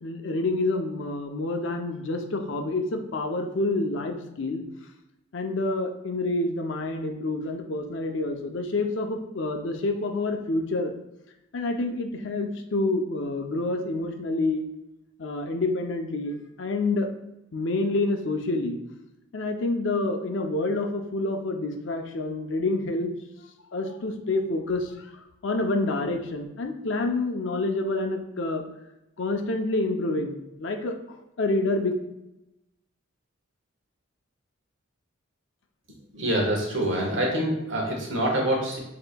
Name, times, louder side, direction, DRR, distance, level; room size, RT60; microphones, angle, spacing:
voice 1, 0.0-4.6 5.3-10.9 11.5-14.6 15.2-17.1 17.5-18.8 19.3-23.1 23.7-25.1 25.4-28.6 29.2-31.0 31.4-31.9, left 2 dB, 60° left, 4 dB, 0.5 m, -28 dB
voice 2, 36.1-38.8, right 1 dB, 65° right, -1 dB, 1.3 m, -25 dB
7.7 x 2.9 x 2.2 m, 0.92 s
head